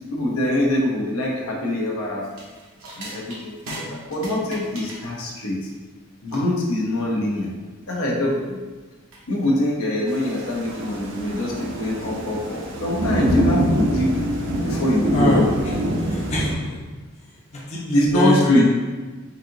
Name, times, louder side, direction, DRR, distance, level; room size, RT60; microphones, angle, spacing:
voice 1, 0.1-2.2 2.9-5.7 6.2-7.5 7.9-8.6 9.3-14.1 14.6-15.7 17.9-18.6, left 1 dB, 85° left, -3 dB, 0.8 m, -23 dB
sound 1, 2.3-11.3, right 1 dB, 80° right, 0.9 m, -41 dB
Thunder / Rain, 10.1-16.5, right 1 dB, 55° right, 0.5 m, -25 dB
voice 2, 15.1-15.4 16.1-16.8 17.5-18.6, equal, 30° left, -4 dB, 0.5 m, -23 dB
4.0 x 2.8 x 2.7 m, 1.3 s
head